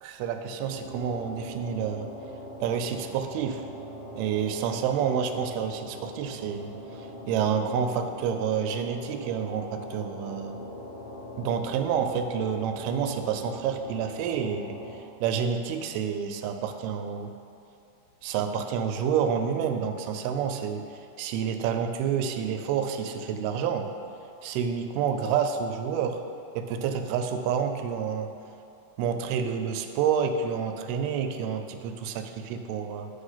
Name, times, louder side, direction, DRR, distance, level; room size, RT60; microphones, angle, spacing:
voice 1, 0.0-2.1 2.6-3.6 4.2-10.6 11.4-14.8 15.2-17.3 18.2-20.9 21.2-23.9 24.4-26.2 26.6-28.3 29.0-33.1, right 7 dB, 90° right, 7 dB, 2.5 m, -29 dB
sound 1, 0.6-15.0, left 1 dB, 70° left, 2.7 m, -41 dB
9.8 x 3.4 x 5.6 m, 2.5 s
omnidirectional pair, 4.4 m